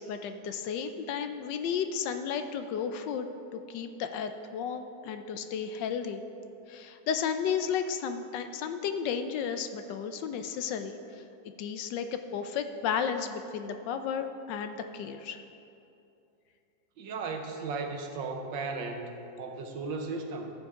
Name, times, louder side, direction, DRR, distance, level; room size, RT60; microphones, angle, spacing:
voice 1, 0.0-6.2 6.7-11.2 11.6-15.4, left 7 dB, 75° left, 8 dB, 1.2 m, -33 dB
voice 2, 17.0-20.5, right 3 dB, 75° right, 4 dB, 1.6 m, -36 dB
14.0 x 7.3 x 3.6 m, 2.7 s
omnidirectional pair, 2.1 m